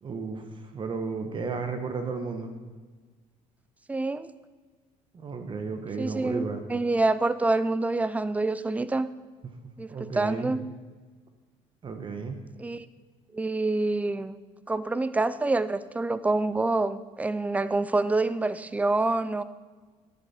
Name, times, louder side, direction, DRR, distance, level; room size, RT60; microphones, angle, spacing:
voice 1, 0.0-2.5 5.1-6.6 9.9-10.5 11.8-12.4, right 4 dB, 35° right, 6 dB, 1.2 m, -33 dB
voice 2, 3.9-4.3 6.0-9.1 9.8-10.6 12.6-12.8 13.3-14.4 14.7-19.4, right 2 dB, 10° right, 15 dB, 0.5 m, -27 dB
11.0 x 10.5 x 4.3 m, 1.4 s
cardioid pair, 105°, 14 cm